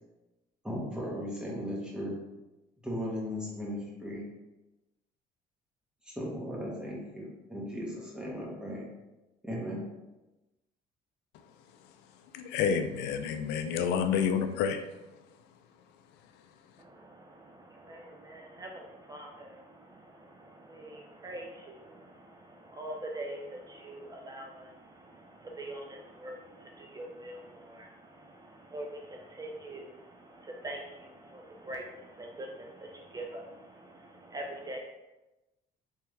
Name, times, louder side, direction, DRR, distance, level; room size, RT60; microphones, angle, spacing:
voice 1, 0.6-2.1 2.8-4.2 6.0-8.8 9.4-9.8, equal, 5° right, -4 dB, 1.2 m, -37 dB
voice 2, 12.3-14.8, left 7 dB, 85° left, 7 dB, 0.4 m, -29 dB
voice 3, 16.8-34.8, right 1 dB, 20° right, 0 dB, 0.4 m, -44 dB
3.5 x 3.4 x 3.1 m, 1.0 s
cardioid pair, 110°, 17 cm